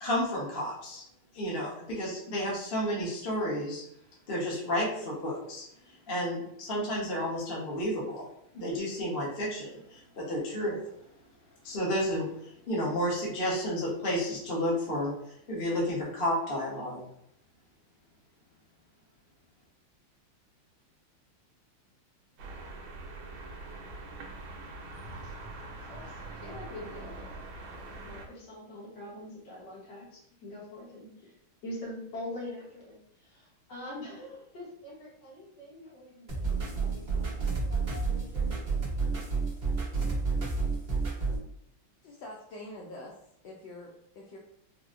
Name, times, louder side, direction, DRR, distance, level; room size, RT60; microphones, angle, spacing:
voice 1, 0.0-1.0 1.3-3.8 4.3-5.7 6.1-8.3 8.5-10.8 11.6-15.1 15.5-17.0, equal, 40° left, -6 dB, 0.8 m, -31 dB
sound 1, 22.4-28.3, right 2 dB, 75° right, 1.3 m, -43 dB
voice 2, 25.9-27.3 28.0-31.3 31.6-36.5 36.8-38.6, left 1 dB, 55° left, -5 dB, 1.6 m, -44 dB
sound 2, 36.3-41.4, right 4 dB, 55° right, 0.5 m, -30 dB
voice 3, 42.0-43.2 43.4-44.4, left 1 dB, 75° left, -3 dB, 1.2 m, -45 dB
4.2 x 2.1 x 2.4 m, 0.74 s
omnidirectional pair, 2.3 m